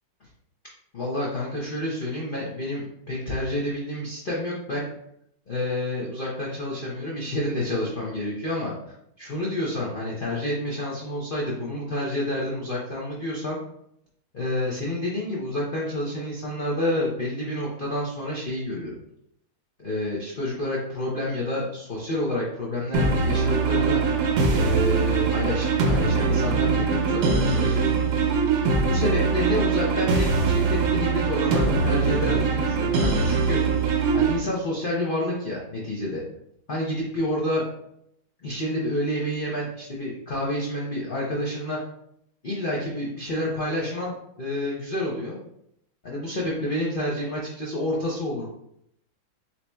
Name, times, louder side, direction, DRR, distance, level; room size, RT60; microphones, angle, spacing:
voice 1, 0.9-4.9 5.5-8.7 9.2-13.6 14.3-19.0 19.8-24.0 24.5-27.8 28.8-33.6 34.1-36.2 36.7-37.6 38.4-41.8 42.4-45.4 46.0-48.5, left 1 dB, 70° left, -5 dB, 0.5 m, -29 dB
sound 1, 22.9-34.4, right 4 dB, 70° right, 1.0 m, -22 dB
7.2 x 2.8 x 2.3 m, 0.74 s
omnidirectional pair, 2.2 m